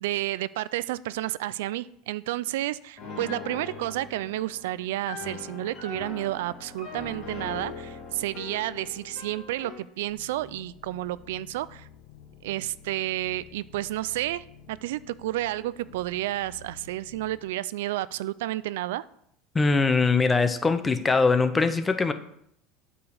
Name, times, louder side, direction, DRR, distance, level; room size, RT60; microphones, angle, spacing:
voice 1, 0.0-11.9 12.4-19.0, right 15 dB, 90° right, 18 dB, 0.3 m, -31 dB
Piano, 3.0-9.9, left 5 dB, 45° left, 2.1 m, -40 dB
sound 1, 10.1-17.4, left 7 dB, 75° left, 1.3 m, -51 dB
voice 2, 19.5-22.1, left 4 dB, 15° left, 10 dB, 0.6 m, -22 dB
8.5 x 5.1 x 6.4 m, 0.72 s
supercardioid pair, 145°, 0 cm